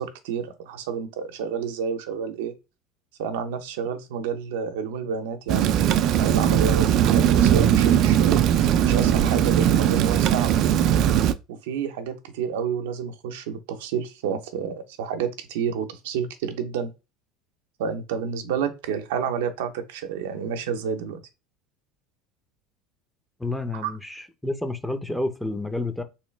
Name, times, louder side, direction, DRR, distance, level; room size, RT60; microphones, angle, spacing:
voice 1, 0.0-2.5 3.2-10.9 11.5-16.9 17.8-21.2 23.7-23.9, right 7 dB, 90° right, 0.6 m, -30 dB
Rain, 5.5-11.3, right 10 dB, 55° right, 0.3 m, -19 dB
voice 2, 23.4-26.0, left 2 dB, 5° left, 0.6 m, -29 dB
3.1 x 3.0 x 3.1 m
supercardioid pair, 120°, 0 cm